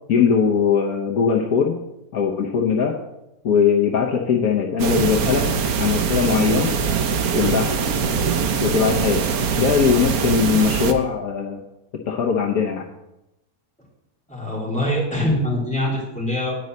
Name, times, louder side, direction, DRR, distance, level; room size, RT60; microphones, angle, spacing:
voice 1, 0.1-1.8 2.1-3.0 3.4-5.5 5.8-6.7 7.3-7.8 8.6-9.3 9.6-11.6 12.1-12.8, left 6 dB, 65° left, 0 dB, 1.3 m, -20 dB
sound 1, 4.8-10.9, right 6 dB, 65° right, 1.3 m, -22 dB
voice 2, 14.3-16.6, left 1 dB, 5° left, -6 dB, 3.5 m, -23 dB
9.4 x 5.4 x 7.7 m, 0.90 s
omnidirectional pair, 1.7 m